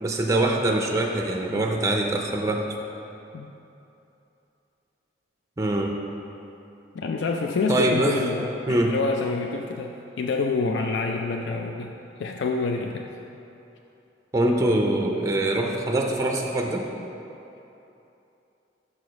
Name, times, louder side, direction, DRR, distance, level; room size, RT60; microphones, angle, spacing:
voice 1, 0.0-2.7 5.6-6.0 7.7-8.2 8.7-8.9 14.3-16.9, right 1 dB, 15° right, 1 dB, 0.5 m, -23 dB
voice 2, 6.9-11.9 12.2-13.1, left 4 dB, 85° left, 3 dB, 0.4 m, -27 dB
6.3 x 4.8 x 5.2 m, 2.9 s
head